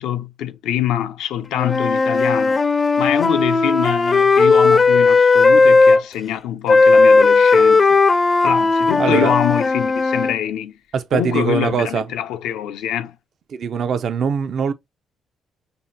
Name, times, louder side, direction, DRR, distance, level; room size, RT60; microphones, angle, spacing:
voice 1, 0.0-2.6 3.0-8.0 8.4-10.8 11.1-13.2, left 10 dB, 90° left, 0.5 m, -24 dB
Wind instrument woodwind instrument, 1.6-6.0 6.7-10.4, left 3 dB, 35° left, 0.4 m, -15 dB
voice 2, 9.0-9.3 10.9-12.1 13.5-14.7, right 6 dB, 60° right, 0.5 m, -21 dB
5.3 x 2.5 x 2.6 m
cardioid pair, 90°, 0 cm